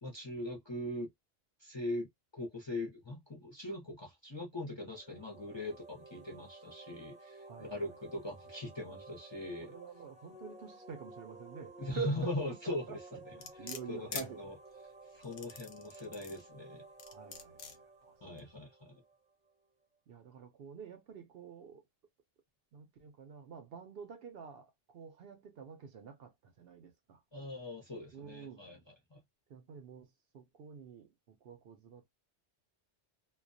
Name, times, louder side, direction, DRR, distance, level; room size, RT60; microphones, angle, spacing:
voice 1, 0.0-1.1 1.6-9.7 11.8-13.0 13.9-14.5 15.1-16.8 18.2-19.0 27.3-28.8 29.1-29.2, left 1 dB, 30° left, 0.6 m, -40 dB
sound 1, 4.8-19.5, right 2 dB, 10° right, 0.4 m, -54 dB
voice 2, 7.4-7.9 9.6-13.0 13.3-14.4 17.1-18.2 20.1-21.8 22.7-27.2 28.1-28.7 29.5-32.1, right 7 dB, 65° right, 0.7 m, -47 dB
sound 2, 13.4-14.3 15.2-16.4 17.0-17.8 18.4-18.5, left 7 dB, 65° left, 0.8 m, -44 dB
2.2 x 2.2 x 2.5 m
omnidirectional pair, 1.2 m